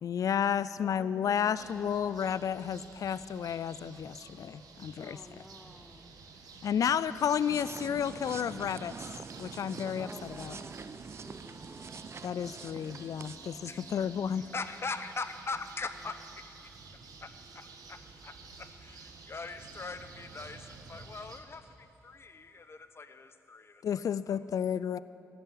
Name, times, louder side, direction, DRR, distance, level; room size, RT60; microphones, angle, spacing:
voice 1, 0.0-5.2 6.6-8.9 9.4-10.6 12.2-14.4 23.8-25.0, left 8 dB, 60° left, 17 dB, 0.4 m, -32 dB
voice 2, 0.8-2.2 5.0-6.1 9.8-11.7, left 1 dB, 5° left, 6 dB, 0.7 m, -52 dB
sound 1, 1.5-21.4, right 4 dB, 70° right, 1.3 m, -51 dB
sound 2, 7.5-13.9, right 5 dB, 40° right, 0.4 m, -46 dB
sound 3, 7.6-14.9, right 1 dB, 15° right, 2.0 m, -57 dB
voice 3, 13.6-14.0 14.5-16.1 17.2-18.0 18.2-24.0 24.3-24.4, left 4 dB, 40° left, 10 dB, 0.9 m, -41 dB
14.5 x 6.7 x 9.9 m, 2.8 s
supercardioid pair, 50°, 7 cm